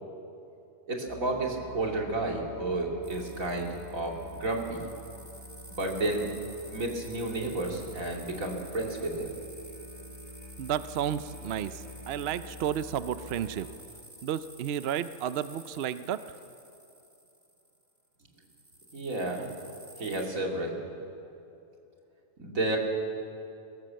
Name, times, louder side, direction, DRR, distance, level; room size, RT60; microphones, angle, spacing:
voice 1, 0.9-4.8 5.7-6.2 6.7-9.3 18.9-19.5 20.0-20.8 22.4-22.8, right 2 dB, 90° right, 0 dB, 3.0 m, -31 dB
Musical instrument, 1.1-13.8, equal, 20° left, 2.2 m, -47 dB
sound 1, 3.0-18.0 18.4-20.2, right 1 dB, 15° right, 2.1 m, -51 dB
voice 2, 10.6-13.7 14.2-16.4, right 9 dB, 60° right, 13 dB, 0.7 m, -32 dB
21.0 x 17.5 x 7.6 m, 2.8 s
omnidirectional pair, 1.4 m